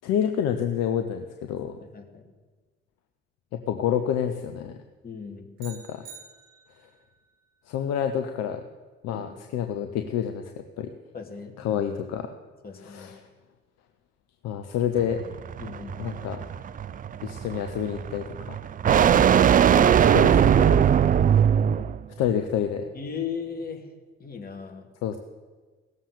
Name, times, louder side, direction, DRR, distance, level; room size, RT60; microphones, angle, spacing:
voice 1, 0.0-1.8 3.5-4.8 5.6-6.0 7.7-8.6 9.0-10.4 10.8-10.9 11.6-12.3 12.8-13.1 14.4-15.2 16.0-16.4 17.2-18.4 20.1-20.8 22.2-22.9 25.0-25.2, left 9 dB, 55° left, 7 dB, 0.9 m, -28 dB
voice 2, 1.8-2.2 5.0-5.5 9.1-9.3 11.1-11.9 12.6-13.1 15.6-16.0 18.9-20.2 22.9-23.9 24.2-24.9, left 5 dB, 30° left, 2 dB, 2.6 m, -37 dB
sound 1, 5.6-7.0, right 6 dB, 75° right, 1.3 m, -47 dB
sound 2, 15.0-22.0, right 8 dB, 25° right, 0.4 m, -20 dB
17.5 x 7.3 x 6.8 m, 1.3 s
figure-of-eight pair, 45°, 31 cm